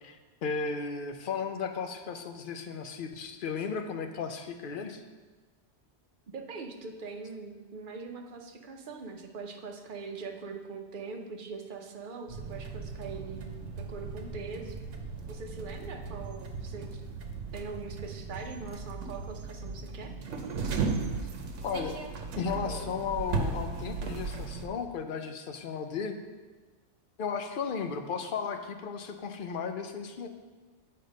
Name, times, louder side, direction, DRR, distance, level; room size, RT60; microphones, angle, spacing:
voice 1, 0.0-5.0 21.6-22.0 22.4-26.1 27.2-30.3, left 5 dB, 55° left, 6 dB, 0.7 m, -35 dB
voice 2, 6.3-13.4 13.8-14.8 15.3-17.0 17.5-20.1, right 4 dB, 50° right, 3 dB, 0.8 m, -42 dB
sound 1, 12.3-24.7, right 4 dB, 85° right, 1.1 m, -36 dB
8.3 x 4.3 x 5.1 m, 1.3 s
omnidirectional pair, 1.2 m